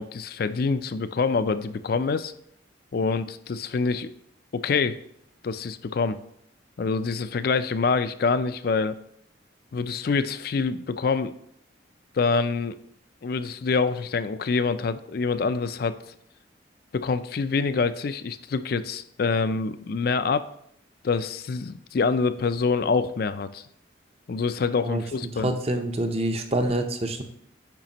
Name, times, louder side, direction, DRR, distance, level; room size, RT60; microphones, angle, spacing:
voice 1, 0.0-2.3 2.9-4.1 4.5-5.0 5.4-6.2 6.8-8.9 9.7-11.3 12.1-12.8 13.2-16.0 16.9-20.5 21.0-23.6 24.3-25.5, left 4 dB, 50° left, 12 dB, 0.4 m, -26 dB
voice 2, 25.4-27.2, right 1 dB, 30° right, 6 dB, 0.7 m, -26 dB
9.0 x 5.1 x 2.9 m, 0.71 s
head